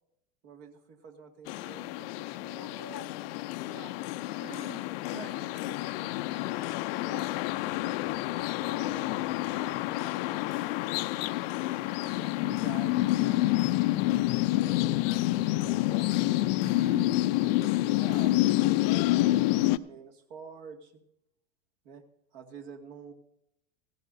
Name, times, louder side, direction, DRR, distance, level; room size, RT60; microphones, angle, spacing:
voice 1, 0.4-3.9 5.2-6.7 7.0-7.3 8.4-10.6 11.8-15.2 15.5-16.4 17.8-21.0 21.8-22.0 22.3-23.1, right 6 dB, 60° right, 2 dB, 2.2 m, -49 dB
sound 1, 1.5-19.8, left 17 dB, 55° left, 0.5 m, -28 dB
voice 2, 4.4-6.1 16.6-17.1, right 4 dB, 15° right, 8 dB, 0.9 m, -45 dB
16.0 x 15.5 x 2.7 m, 0.81 s
hypercardioid pair, 100°, 35 cm